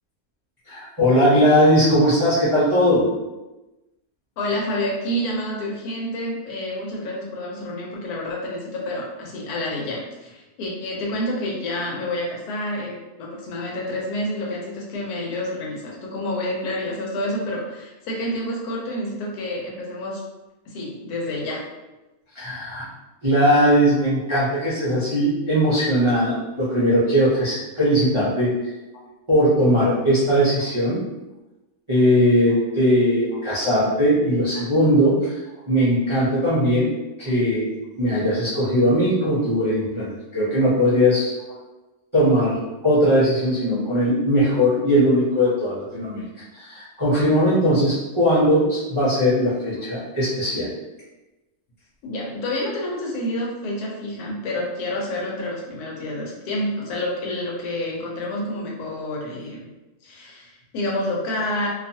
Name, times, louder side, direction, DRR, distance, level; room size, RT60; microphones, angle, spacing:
voice 1, 0.7-3.0 22.3-22.9 23.2-28.7 29.3-31.0 31.9-36.9 37.2-37.7 38.0-41.3 42.1-46.2 46.5-50.7, equal, 45° right, -11 dB, 0.3 m, -19 dB
voice 2, 4.4-20.2 20.7-21.7 34.6-34.7 52.0-59.7 60.0-61.7, left 1 dB, 80° left, -2 dB, 1.2 m, -28 dB
2.7 x 2.3 x 2.6 m, 1.1 s
omnidirectional pair, 1.6 m